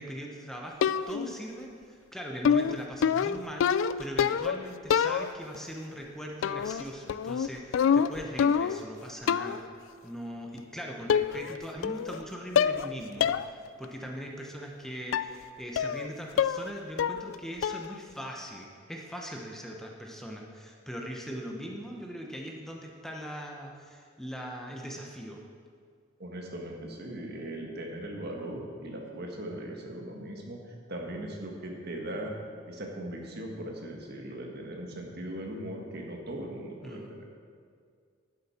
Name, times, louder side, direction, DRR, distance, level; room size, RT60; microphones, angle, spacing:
voice 1, 0.0-9.7 10.0-25.4 36.8-37.1, equal, ahead, 0 dB, 0.9 m, -40 dB
sound 1, 0.8-1.4 2.4-4.6 4.9-5.6 6.4-6.8 7.1-8.9 9.3-9.7 10.6-10.7 11.1-11.6 11.8-12.2 12.6-12.9 13.2-13.4 13.8-13.9 15.1-15.4 15.8-16.1 16.4-16.7 17.0-17.4 17.6-18.0, left 7 dB, 75° left, 0.3 m, -26 dB
voice 2, 26.2-32.4 32.7-37.2, right 1 dB, 55° right, 1 dB, 1.6 m, -39 dB
11.5 x 10.5 x 4.3 m, 2.1 s
head